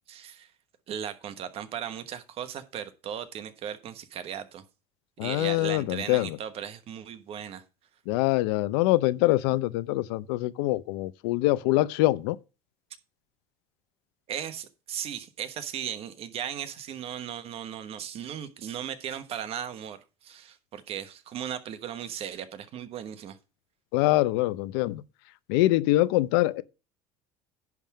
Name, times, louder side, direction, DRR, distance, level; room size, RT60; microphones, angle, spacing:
voice 1, 0.1-0.5 0.9-4.6 5.2-7.6 14.3-23.4, right 9 dB, 50° right, 1.2 m, -37 dB
voice 2, 5.2-6.4 8.1-12.4 23.9-25.0 25.5-26.6, left 18 dB, 90° left, 0.6 m, -24 dB
10.5 x 3.6 x 7.3 m
cardioid pair, 110°, 12 cm